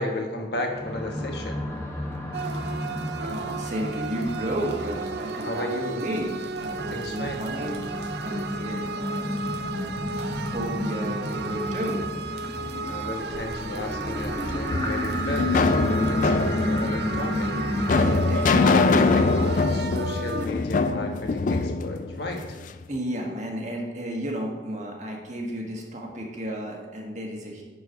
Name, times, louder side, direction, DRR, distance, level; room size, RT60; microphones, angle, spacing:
voice 1, 0.0-1.6 5.4-6.0 6.7-7.4 12.9-17.7 18.6-18.9 19.1-22.6, left 2 dB, 60° left, 2 dB, 1.2 m, -33 dB
sound 1, 0.7-18.1, left 1 dB, 15° left, 1.2 m, -32 dB
sound 2, 2.3-20.5, right 4 dB, 60° right, 0.4 m, -34 dB
voice 2, 3.2-5.7 6.0-7.9 8.2-12.0 17.9-19.3 22.9-27.6, equal, 40° right, 0 dB, 1.5 m, -33 dB
sound 3, 14.7-22.8, left 3 dB, 45° left, 0.3 m, -23 dB
10.0 x 4.6 x 5.4 m, 1.4 s
head